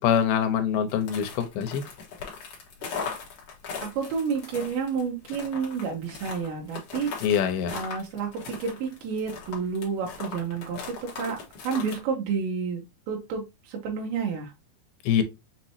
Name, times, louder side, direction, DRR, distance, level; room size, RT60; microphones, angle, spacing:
voice 1, 0.0-1.8 7.2-7.8 15.0-15.2, left 8 dB, 80° left, 2.6 m, -24 dB
sound 1, 0.9-12.0, left 5 dB, 55° left, 1.9 m, -39 dB
voice 2, 3.8-7.3 7.7-14.5, right 5 dB, 80° right, 2.7 m, -30 dB
6.3 x 2.9 x 2.7 m
omnidirectional pair, 4.4 m